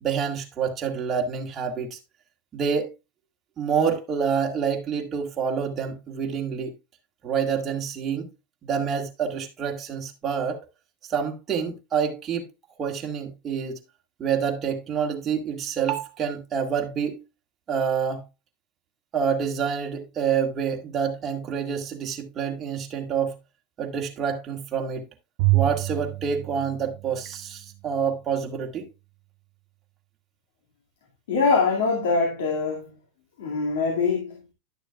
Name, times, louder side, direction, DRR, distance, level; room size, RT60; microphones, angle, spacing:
voice 1, 0.0-2.0 2.5-2.9 3.6-6.7 7.2-8.3 8.6-10.6 11.1-12.4 12.8-13.8 14.2-17.2 17.7-18.2 19.1-23.4 23.8-25.1 25.5-28.9, right 7 dB, 25° right, 1.9 m, -27 dB
Bowed string instrument, 25.4-27.8, right 22 dB, 55° right, 0.4 m, -27 dB
voice 2, 31.3-32.9 33.4-34.5, left 4 dB, 85° left, 2.3 m, -23 dB
11.5 x 6.7 x 2.4 m
supercardioid pair, 140°, 0 cm